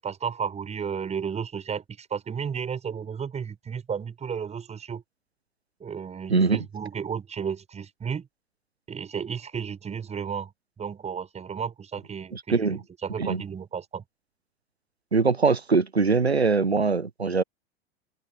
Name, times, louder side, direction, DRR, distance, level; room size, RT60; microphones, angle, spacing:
voice 1, 0.0-5.0 5.8-8.3 8.9-10.5 10.8-14.0, right 7 dB, 20° right, 7.1 m, -33 dB
voice 2, 12.3-12.8 13.2-13.4 15.1-17.4, right 4 dB, 90° right, 0.9 m, -22 dB
open air
figure-of-eight pair, 85°, 31 cm